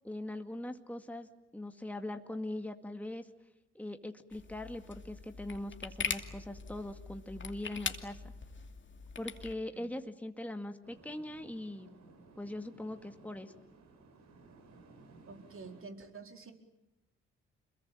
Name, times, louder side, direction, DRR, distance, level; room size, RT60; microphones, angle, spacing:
voice 1, 0.0-1.3 1.5-3.3 3.7-8.2 9.2-12.0 12.4-13.5, left 1 dB, 5° left, 6 dB, 2.1 m, -41 dB
sound 1, 4.3-9.5, left 4 dB, 40° left, 2.6 m, -42 dB
sound 2, 10.8-15.8, right 3 dB, 65° right, 4.2 m, -58 dB
voice 2, 15.3-16.5, right 4 dB, 45° right, 4 dB, 4.4 m, -48 dB
26.5 x 22.0 x 9.2 m, 0.90 s
hypercardioid pair, 50°, 30 cm